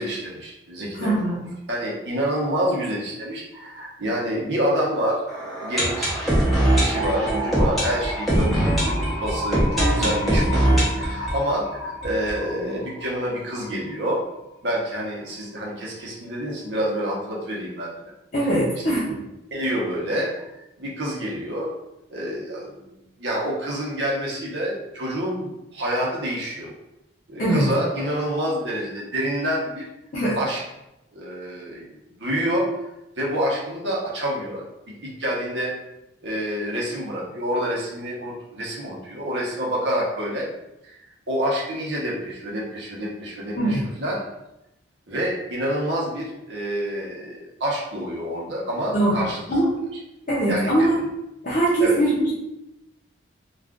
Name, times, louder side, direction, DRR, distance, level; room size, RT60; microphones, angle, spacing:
voice 1, 0.0-14.2 14.6-17.9 19.5-20.3 20.8-21.7 22.1-26.7 27.3-29.8 30.3-30.6 31.1-32.8 33.2-35.7 36.2-40.5 40.8-41.0 41.3-44.2 45.1-49.5 50.5-50.9 51.8-52.0, equal, 60° right, -4 dB, 0.9 m, -28 dB
voice 2, 0.9-1.4 8.3-8.6 18.3-19.0 27.4-27.6 30.1-30.4 43.6-43.8 48.9-49.2 49.5-49.7 50.3-51.0 51.4-52.3, right 1 dB, 40° left, -8 dB, 0.7 m, -21 dB
sound 1, 5.3-13.0 13.3-13.4 13.6-13.7 14.2-14.3, right 1 dB, ahead, 0.8 m, -22 dB
2.4 x 2.4 x 3.5 m, 0.90 s
head